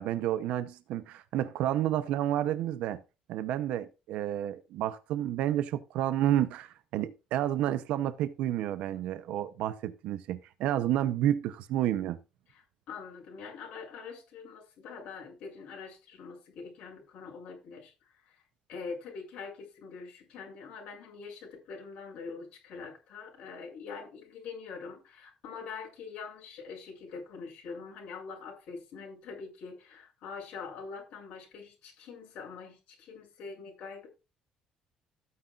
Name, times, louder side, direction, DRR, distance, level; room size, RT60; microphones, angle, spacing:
voice 1, 0.0-3.0 3.3-12.2, right 12 dB, 70° right, 0.7 m, -30 dB
voice 2, 12.5-17.9 18.2-18.4 18.7-34.1, left 5 dB, 60° left, 7.2 m, -44 dB
13.5 x 9.7 x 2.4 m
cardioid pair, 175°, 2 cm